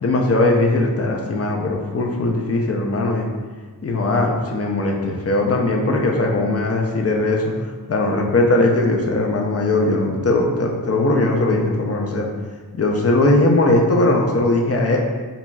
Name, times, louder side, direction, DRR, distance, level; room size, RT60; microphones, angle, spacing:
voice 1, 0.0-3.3 3.8-12.3 12.7-15.0, left 2 dB, 40° left, 1 dB, 0.6 m, -19 dB
3.9 x 3.0 x 2.3 m, 1.4 s
cardioid pair, 55°, 39 cm